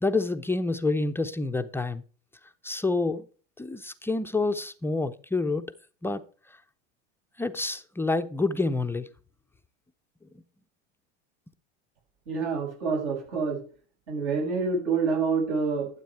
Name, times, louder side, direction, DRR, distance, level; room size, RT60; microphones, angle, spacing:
voice 1, 0.0-2.0 2.6-3.3 3.6-5.7 6.0-6.2 7.4-9.1, left 3 dB, 5° left, 0.4 m, -28 dB
voice 2, 12.3-13.6 14.1-15.9, right 5 dB, 70° right, 6.6 m, -27 dB
12.5 x 7.8 x 4.5 m
supercardioid pair, 115°, 37 cm